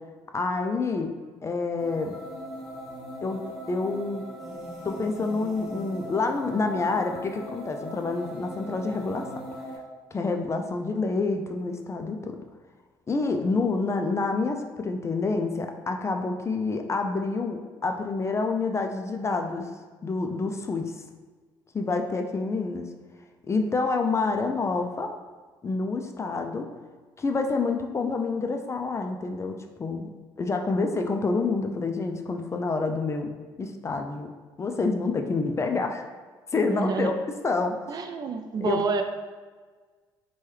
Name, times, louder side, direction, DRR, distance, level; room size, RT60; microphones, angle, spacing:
voice 1, 0.3-1.1 1.4-2.2 3.2-3.4 3.7-4.2 4.8-9.2 10.1-12.3 13.1-19.7 20.0-20.9 21.7-22.9 23.5-25.1 25.6-26.7 27.2-30.1 30.4-33.3 33.6-34.3 34.6-36.0 36.5-37.1 37.4-37.8 38.6-38.8, left 3 dB, 30° left, 5 dB, 0.3 m, -27 dB
sound 1, 1.8-9.8, equal, ahead, 1.1 m, -39 dB
voice 2, 36.7-37.1 37.9-39.0, right 4 dB, 45° right, 6 dB, 0.3 m, -28 dB
3.0 x 2.3 x 3.1 m, 1.4 s
supercardioid pair, 70°, 10 cm